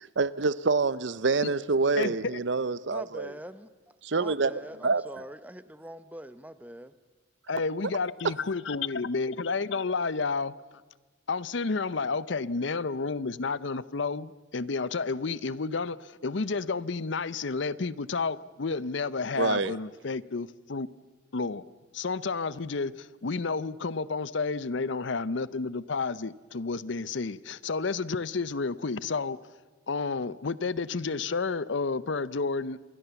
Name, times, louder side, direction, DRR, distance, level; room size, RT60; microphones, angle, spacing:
voice 1, 0.0-3.3 4.0-4.5 4.8-5.0 19.4-19.7, right 4 dB, 65° right, 0.7 m, -26 dB
voice 2, 2.0-2.3 7.5-10.5 11.3-20.9 21.3-21.6 21.9-29.4 29.9-32.8, left 4 dB, 65° left, 0.6 m, -31 dB
voice 3, 2.9-6.9, right 1 dB, 10° right, 0.8 m, -43 dB
27.5 x 21.5 x 7.0 m
head